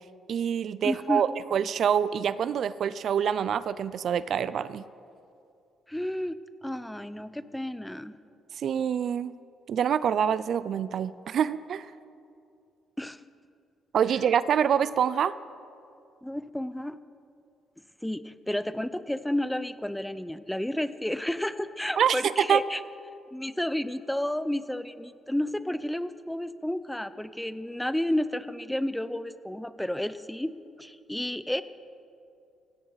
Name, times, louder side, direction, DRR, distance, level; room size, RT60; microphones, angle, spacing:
voice 1, 0.3-4.8 8.6-9.3 9.7-11.9 13.9-15.3 22.0-22.6, right 8 dB, 65° right, 16 dB, 0.4 m, -26 dB
voice 2, 0.8-1.2 5.9-8.2 13.0-13.2 16.2-17.0 18.0-22.8 23.3-30.5 30.8-31.6, left 1 dB, 5° left, 13 dB, 0.6 m, -31 dB
17.5 x 16.5 x 4.1 m, 2.5 s
cardioid pair, 90°, 0 cm